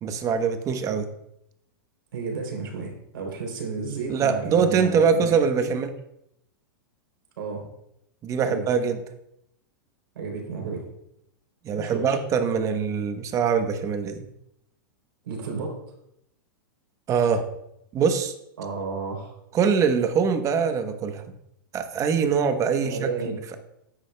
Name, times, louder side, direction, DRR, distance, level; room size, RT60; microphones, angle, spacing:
voice 1, 0.0-1.1 4.1-5.9 8.2-9.0 11.6-14.3 17.1-17.5 17.9-18.3 19.5-21.2 21.7-23.1, right 6 dB, 25° right, 7 dB, 0.9 m, -23 dB
voice 2, 2.1-5.7 7.4-7.7 8.4-8.7 10.1-10.8 11.7-12.1 15.2-15.8 18.6-19.3 22.8-23.4, right 4 dB, 85° right, 0 dB, 3.3 m, -32 dB
9.9 x 8.9 x 2.2 m, 0.80 s
hypercardioid pair, 135°, 12 cm